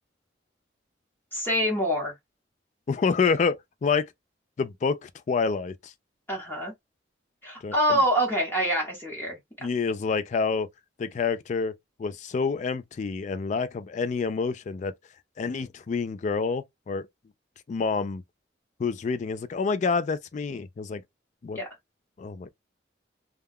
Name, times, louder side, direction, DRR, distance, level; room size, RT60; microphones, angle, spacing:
voice 1, 1.3-2.1 6.3-6.7 7.4-9.4 21.5-21.7, equal, 10° left, 1.0 m, -25 dB
voice 2, 2.9-4.1 4.6-5.9 7.6-8.0 9.6-10.7 11.0-14.9 15.4-17.1 17.7-18.2 18.8-21.0 21.4-21.6 22.2-22.5, left 5 dB, 40° left, 0.3 m, -28 dB
2.2 x 2.2 x 3.4 m
head